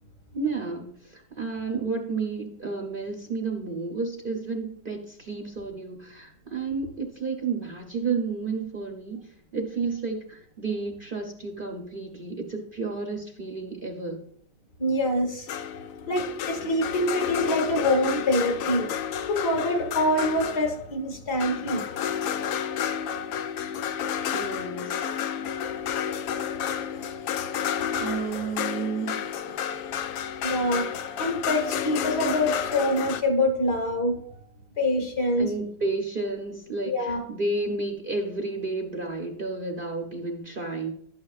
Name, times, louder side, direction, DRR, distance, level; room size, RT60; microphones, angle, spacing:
voice 1, 0.3-14.2 24.3-25.2 28.0-29.2 35.4-40.9, right 4 dB, 75° right, 2 dB, 0.4 m, -31 dB
voice 2, 14.8-15.5 16.1-18.9 19.3-21.8 30.4-30.9 31.2-34.2 34.8-35.5 36.9-37.2, left 1 dB, 55° left, 2 dB, 1.9 m, -25 dB
sound 1, 15.5-20.9 21.4-33.2, left 8 dB, 80° left, 1.3 m, -31 dB
12.0 x 8.5 x 2.4 m, 0.65 s
omnidirectional pair, 2.1 m